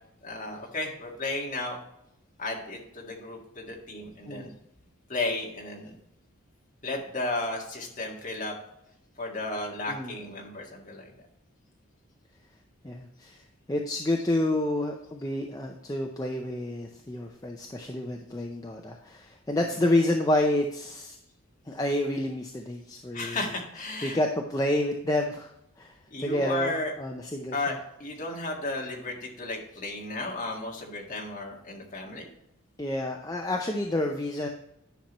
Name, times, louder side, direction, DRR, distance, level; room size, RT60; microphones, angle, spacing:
voice 1, 0.2-1.8 2.4-4.5 5.1-5.9 6.8-8.5 9.2-11.1 19.5-19.8 23.1-24.2 26.1-26.9 27.5-32.3, left 2 dB, 35° left, -1 dB, 1.8 m, -34 dB
voice 2, 12.8-13.4 13.7-21.2 21.7-23.4 24.0-25.5 25.8-25.9 26.2-27.8 32.8-34.5, left 1 dB, 15° left, 2 dB, 0.5 m, -29 dB
10.0 x 5.8 x 3.0 m, 0.80 s
head